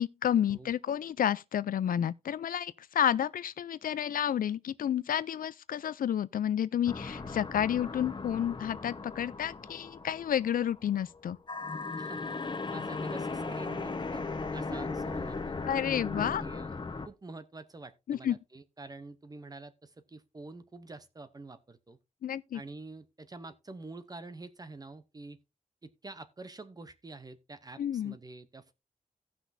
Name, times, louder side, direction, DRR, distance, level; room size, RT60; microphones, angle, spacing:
voice 1, 0.0-11.4 15.6-16.4 18.1-18.4 22.2-22.6 27.8-28.2, left 10 dB, 85° left, 0.4 m, -30 dB
sound 1, 6.8-11.2 11.5-17.1, left 3 dB, 35° left, 1.0 m, -37 dB
voice 2, 12.7-14.2 14.5-15.6 16.2-16.7 17.0-22.0 22.5-25.4 25.8-28.7, right 3 dB, 25° right, 0.7 m, -47 dB
17.0 x 6.1 x 2.6 m
wide cardioid pair, 180°, 14 cm